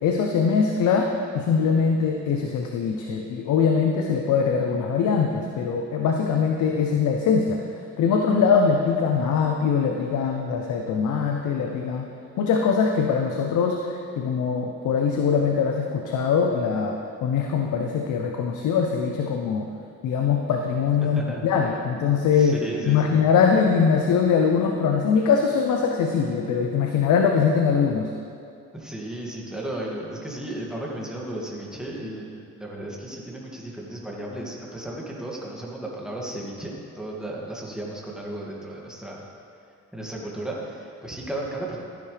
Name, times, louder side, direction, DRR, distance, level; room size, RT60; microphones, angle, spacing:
voice 1, 0.0-7.6 8.0-12.1 12.4-19.7 20.0-22.6 22.9-28.1, left 6 dB, 75° left, 2 dB, 0.9 m, -22 dB
voice 2, 21.0-21.8 22.3-23.2 28.7-39.2 39.9-41.8, right 1 dB, ahead, -4 dB, 2.3 m, -34 dB
14.5 x 10.5 x 3.4 m, 2.5 s
cardioid pair, 90°, 30 cm